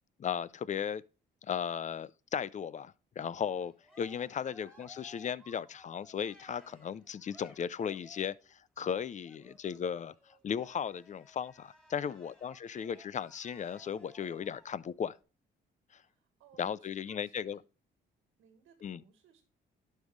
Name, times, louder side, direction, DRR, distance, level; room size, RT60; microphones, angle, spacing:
voice 1, 0.2-1.0 1.4-10.1 10.4-15.2 15.9-16.0 16.6-17.6 18.8-19.0, left 8 dB, 40° left, 0.4 m, -36 dB
Cheering, 3.5-8.5 9.2-14.8, left 2 dB, ahead, 3.8 m, -59 dB
voice 2, 11.9-12.9 16.0-17.6 18.4-19.4, right 7 dB, 85° right, 1.5 m, -64 dB
11.5 x 5.4 x 3.1 m
cardioid pair, 90°, 20 cm